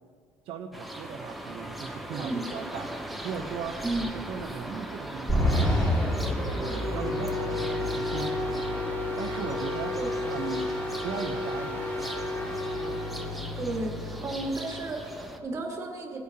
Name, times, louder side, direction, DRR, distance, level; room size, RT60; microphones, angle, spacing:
voice 1, 0.4-2.9 3.2-3.7 4.0-5.6 6.4-8.8 9.2-10.0 10.3-10.7 11.0-11.8, right 7 dB, 60° right, 2 dB, 0.8 m, -38 dB
sound 1, 0.7-15.4, right 1 dB, ahead, 0.7 m, -39 dB
sound 2, 5.3-14.7, left 1 dB, 15° left, 2.0 m, -30 dB
voice 2, 13.6-16.2, right 2 dB, 25° right, 0 dB, 1.7 m, -33 dB
19.0 x 8.4 x 2.8 m, 2.1 s
cardioid pair, 165°, 11 cm